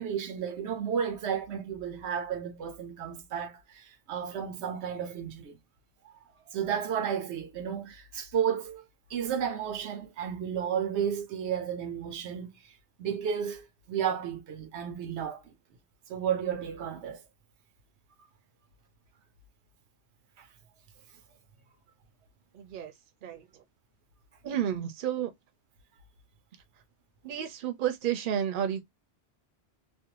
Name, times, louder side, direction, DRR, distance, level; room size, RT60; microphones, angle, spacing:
voice 1, 0.0-5.6 6.5-8.8 9.1-12.5 13.0-15.4 16.1-17.2 20.4-20.5, right 8 dB, 85° right, 0.9 m, -32 dB
voice 2, 22.5-22.9 23.2-23.6 24.4-25.3 27.2-28.8, right 10 dB, 60° right, 0.7 m, -31 dB
2.5 x 2.1 x 2.8 m
omnidirectional pair, 1.1 m